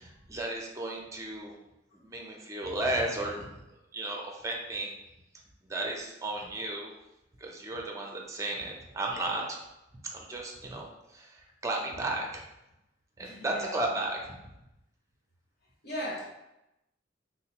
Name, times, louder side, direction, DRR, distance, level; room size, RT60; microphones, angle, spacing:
voice 1, 0.0-1.5 1.9-3.5 3.9-4.9 5.7-6.9 7.4-9.6 10.0-12.4 13.2-14.4, right 2 dB, 15° right, 0 dB, 0.5 m, -34 dB
voice 2, 13.2-13.8 15.8-16.3, equal, 55° left, -3 dB, 1.0 m, -37 dB
3.7 x 2.5 x 2.9 m, 0.90 s
head